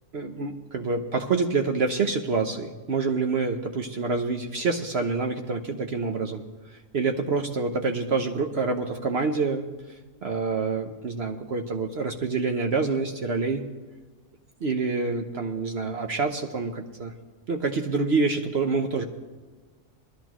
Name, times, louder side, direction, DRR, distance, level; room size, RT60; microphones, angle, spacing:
voice 1, 0.1-6.4 6.7-13.6 14.6-17.1 17.5-19.1, right 4 dB, 50° right, 4 dB, 0.9 m, -27 dB
21.0 x 13.0 x 3.0 m, 1.3 s
omnidirectional pair, 1.6 m